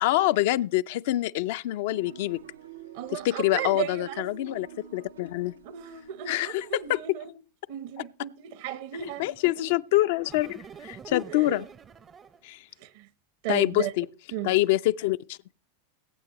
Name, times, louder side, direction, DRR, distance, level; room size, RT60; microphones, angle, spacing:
voice 1, 0.0-2.4 3.1-4.7 4.9-5.5 6.3-7.2 9.2-11.6 12.4-12.6 13.5-14.1 14.4-15.4, left 16 dB, 60° left, 0.5 m, -26 dB
sound 1, 1.9-7.1, right 9 dB, 85° right, 0.7 m, -48 dB
voice 2, 2.9-4.3 5.6-7.3 7.7-9.8 11.3-11.6 12.8-13.1 13.4-13.9 14.3-14.5, right 11 dB, 60° right, 1.0 m, -35 dB
sound 2, 8.9-9.6 10.2-12.5, right 7 dB, 30° right, 0.6 m, -47 dB
22.0 x 8.6 x 3.0 m
hypercardioid pair, 90°, 0 cm